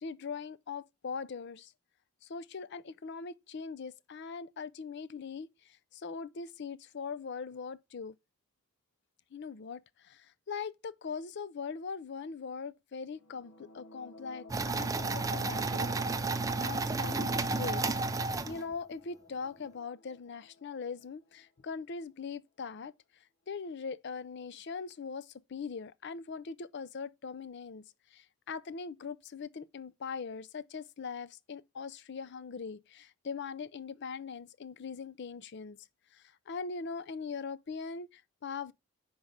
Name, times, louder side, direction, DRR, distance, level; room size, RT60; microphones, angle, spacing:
voice 1, 0.0-1.7 2.2-8.1 9.3-15.9 16.2-17.8 18.5-22.9 23.5-27.8 28.1-35.8 36.1-38.7, left 5 dB, 50° left, 0.5 m, -41 dB
sound 1, 13.1-21.7, left 2 dB, 90° left, 1.4 m, -52 dB
sound 2, 14.5-18.9, right 3 dB, 15° right, 0.5 m, -32 dB
5.4 x 4.7 x 6.4 m
head